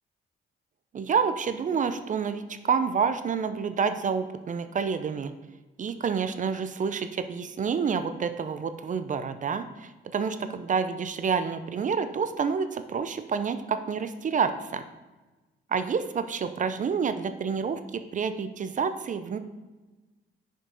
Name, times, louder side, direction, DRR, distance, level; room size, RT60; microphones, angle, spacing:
voice 1, 0.9-5.3 5.8-14.8 15.7-19.4, right 6 dB, 40° right, 10 dB, 0.5 m, -28 dB
6.3 x 5.2 x 3.9 m, 1.2 s
cardioid pair, 90°, 20 cm